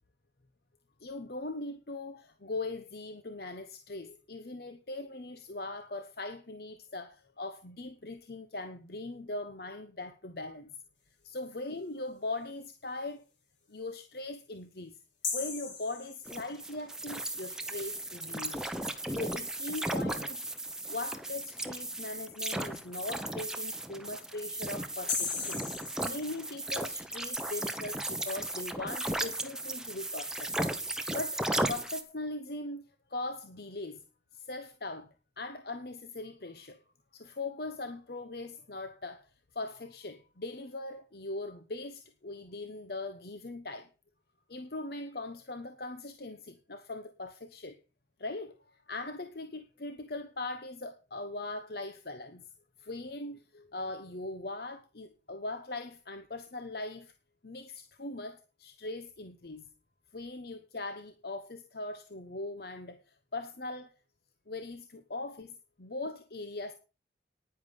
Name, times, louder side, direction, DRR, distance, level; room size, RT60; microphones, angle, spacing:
voice 1, 1.0-10.8 11.2-13.2 13.7-15.0 15.3-18.7 19.1-20.5 20.9-25.7 26.0-30.5 30.9-31.4 31.7-32.8 33.1-34.0 34.3-35.1 35.4-36.8 37.1-43.9 44.5-47.8 48.2-52.4 52.8-57.1 57.4-59.7 60.1-63.9 64.5-66.7, left 2 dB, 55° left, 1.0 m, -40 dB
sound 1, 15.2-16.8 25.1-26.9, left 5 dB, 90° left, 4.7 m, -37 dB
sound 2, 16.3-32.0, right 1 dB, 5° right, 1.1 m, -35 dB
10.5 x 10.0 x 5.4 m
head